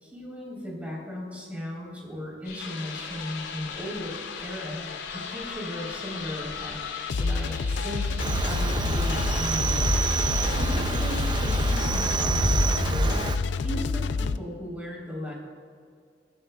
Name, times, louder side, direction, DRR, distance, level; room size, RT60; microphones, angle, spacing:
voice 1, 0.0-6.8 7.2-8.2 8.4-9.9 10.5-13.3 13.6-15.3, equal, 10° right, -4 dB, 3.6 m, -36 dB
sound 1, 2.4-11.7, left 4 dB, 60° left, 3.1 m, -40 dB
sound 2, 2.6-14.4, left 4 dB, 80° left, 0.4 m, -29 dB
Cricket, 8.2-13.4, right 4 dB, 25° right, 0.4 m, -27 dB
21.0 x 12.5 x 2.3 m, 2.2 s
head